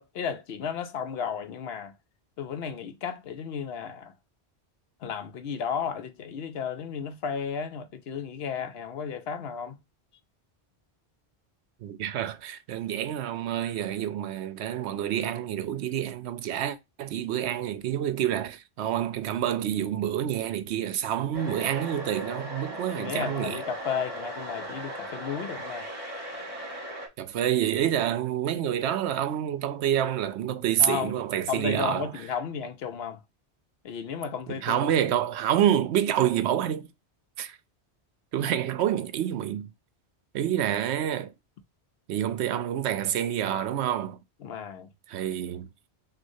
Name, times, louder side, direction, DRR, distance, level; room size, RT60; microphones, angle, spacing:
voice 1, 0.0-1.9 2.4-4.1 5.0-9.8 23.0-25.9 30.8-31.2 31.5-33.2 33.8-34.9 38.4-38.5 44.4-44.9, left 7 dB, 70° left, 0.8 m, -33 dB
voice 2, 11.8-23.6 27.2-32.1 34.6-36.9 37.4-37.6 38.3-39.7 40.3-41.3 42.1-44.2 45.1-45.7, right 10 dB, 75° right, 0.8 m, -28 dB
sound 1, 21.3-27.1, right 1 dB, 40° right, 1.4 m, -38 dB
6.2 x 2.5 x 2.7 m
omnidirectional pair, 1.1 m